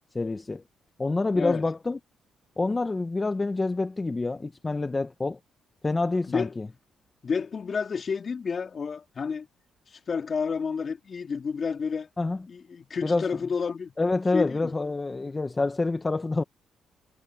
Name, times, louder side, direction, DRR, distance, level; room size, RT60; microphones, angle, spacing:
voice 1, 0.1-0.6 1.0-2.0 2.6-5.4 5.8-6.7 12.2-12.4 13.0-13.3 14.0-16.4, left 3 dB, 20° left, 1.4 m, -27 dB
voice 2, 7.2-9.5 9.9-12.1 12.5-13.9 14.3-14.7, left 5 dB, 40° left, 4.2 m, -30 dB
cardioid pair, 90°, 0 cm